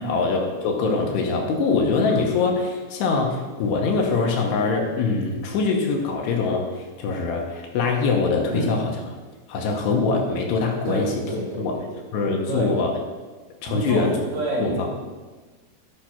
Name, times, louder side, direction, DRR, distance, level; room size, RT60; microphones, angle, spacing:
voice 1, 0.0-9.0 9.5-11.2 11.6-11.8 12.1-12.9 13.6-14.1 14.6-14.9, left 4 dB, 75° left, 1 dB, 2.9 m, -23 dB
voice 2, 10.9-11.9 12.5-12.8 13.7-14.9, right 1 dB, 50° right, -6 dB, 3.4 m, -27 dB
13.0 x 5.8 x 4.4 m, 1.3 s
omnidirectional pair, 5.2 m